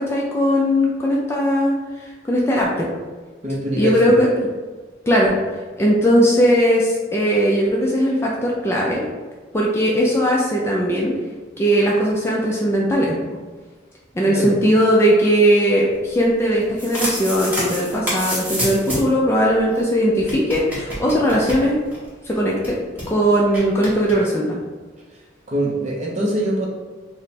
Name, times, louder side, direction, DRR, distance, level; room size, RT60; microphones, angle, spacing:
voice 1, 0.0-2.9 3.8-4.5 5.1-5.3 5.8-9.1 9.5-11.1 11.6-13.1 14.1-21.8 22.2-22.8 23.1-24.6, equal, 15° left, -4 dB, 0.3 m, -18 dB
voice 2, 3.4-4.1 14.2-14.5 25.5-26.7, right 1 dB, 35° right, -2 dB, 0.6 m, -23 dB
sound 1, 16.6-19.2 19.5-19.6 19.7-19.8 20.2-22.1 22.3-22.4 22.6-23.1 23.5-24.1, equal, 10° right, 0.9 m, -27 dB
3.3 x 2.0 x 4.1 m, 1.4 s
head